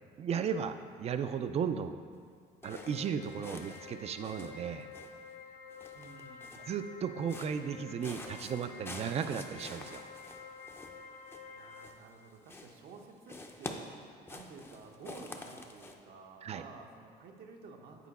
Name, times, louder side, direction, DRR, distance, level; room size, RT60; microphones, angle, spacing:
voice 1, 0.2-2.0 2.6-4.9 6.6-10.1 16.4-16.6, right 7 dB, 40° right, 10 dB, 0.4 m, -35 dB
sound 1, 2.6-11.9, left 6 dB, 60° left, 0.6 m, -50 dB
sound 2, 2.6-3.9 4.2-5.3 5.7-6.8 7.2-7.7 8.0-12.2 12.4-13.0 13.3-15.9, left 2 dB, 15° left, 0.5 m, -48 dB
voice 2, 5.9-6.6 11.5-13.9 14.3-18.1, right 4 dB, 70° right, 2 dB, 0.8 m, -51 dB
8.3 x 4.5 x 4.1 m, 2.1 s
cardioid pair, 110°, 17 cm